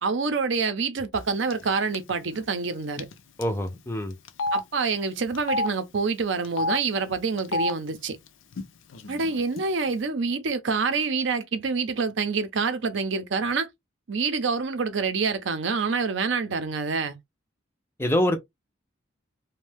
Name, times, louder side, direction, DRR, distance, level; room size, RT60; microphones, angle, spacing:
voice 1, 0.0-3.1 4.5-8.2 9.1-13.7 14.1-17.2, right 4 dB, 70° right, 0.5 m, -27 dB
Telephone, 1.5-1.7 1.9-2.1 3.0-3.1 3.4-3.5 4.3-4.6 5.3-5.7 6.4-6.8 7.4-7.7 8.5-8.6 8.9-9.6, left 2 dB, 75° left, 0.5 m, -27 dB
voice 2, 3.4-4.1 18.0-18.4, left 1 dB, 10° left, 0.4 m, -25 dB
2.6 x 2.1 x 3.2 m
head